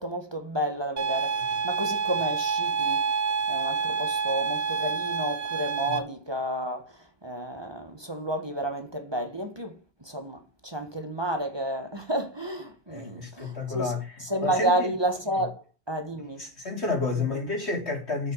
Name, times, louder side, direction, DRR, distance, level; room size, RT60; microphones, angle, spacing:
voice 1, 0.0-3.0 3.5-13.9 14.2-16.5 17.1-17.4, right 1 dB, 25° right, 1.5 m, -31 dB
sound 1, 1.0-6.0, right 5 dB, 90° right, 1.6 m, -28 dB
voice 2, 12.9-14.0 14.4-14.9 16.4-18.3, left 3 dB, 85° left, 4.1 m, -30 dB
7.9 x 7.0 x 6.6 m
omnidirectional pair, 1.1 m